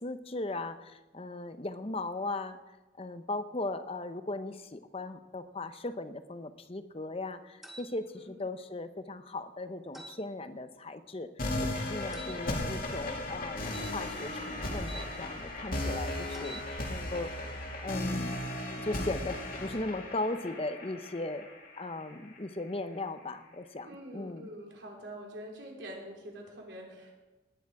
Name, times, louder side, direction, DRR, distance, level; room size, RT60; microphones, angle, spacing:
voice 1, 0.0-2.6 3.0-16.6 16.9-17.6 17.8-18.4 18.8-21.5 21.8-24.5, left 2 dB, 30° left, 11 dB, 0.8 m, -38 dB
Switch + beep kitchen hood, 7.6-7.9 9.9-10.2 12.1-12.4 13.7-15.1 16.3-16.7, equal, ahead, 1.7 m, -46 dB
sound 1, 11.4-22.4, left 1 dB, 50° left, 2.3 m, -36 dB
voice 2, 12.0-12.5 23.8-27.1, equal, 65° right, -1 dB, 3.5 m, -46 dB
19.0 x 10.0 x 4.8 m, 1.1 s
head